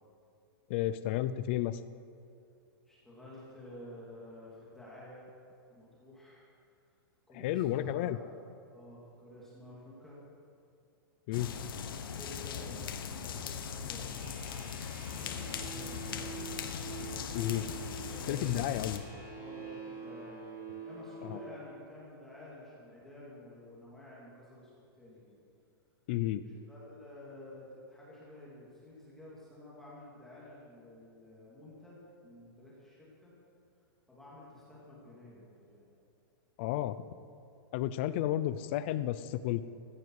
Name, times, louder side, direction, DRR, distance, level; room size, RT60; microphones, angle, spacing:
voice 1, 0.7-1.8 7.3-8.2 11.3-11.5 17.3-17.7 18.3-19.0 21.2-21.4 26.1-26.4 36.6-37.0 37.7-39.6, left 13 dB, 30° left, 14 dB, 0.5 m, -32 dB
voice 2, 2.9-5.3 5.7-6.4 7.3-10.2 12.0-14.4 15.1-16.5 18.0-20.5 20.8-24.7 25.0-25.4 26.4-33.3 34.1-35.9, left 1 dB, 5° left, -7 dB, 2.4 m, -51 dB
sound 1, 11.3-19.0, left 7 dB, 65° left, 1.3 m, -39 dB
sound 2, 14.1-21.5, right 5 dB, 15° right, 2.6 m, -46 dB
15.5 x 15.0 x 4.8 m, 2.6 s
supercardioid pair, 175°, 13 cm